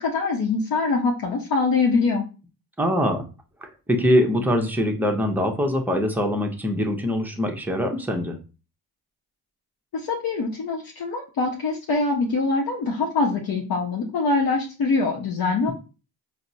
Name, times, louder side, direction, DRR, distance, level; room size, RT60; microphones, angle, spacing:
voice 1, 0.0-2.2 9.9-15.7, left 3 dB, 60° left, -1 dB, 0.7 m, -23 dB
voice 2, 2.8-3.2 3.6-8.4, equal, 5° right, 3 dB, 0.6 m, -23 dB
4.2 x 2.0 x 2.6 m, 0.33 s
cardioid pair, 85°, 40 cm